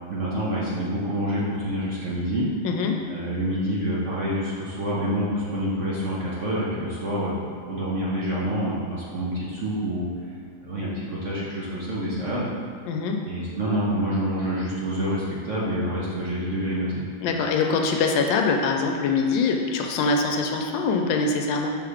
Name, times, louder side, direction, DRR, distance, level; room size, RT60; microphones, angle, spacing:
voice 1, 0.1-2.5 3.1-10.1 10.6-12.5 13.2-17.0, equal, 50° right, -7 dB, 1.0 m, -27 dB
voice 2, 2.6-3.0 12.9-13.2 17.2-21.8, left 4 dB, 75° left, 3 dB, 1.2 m, -23 dB
5.7 x 3.6 x 4.9 m, 2.3 s
omnidirectional pair, 2.2 m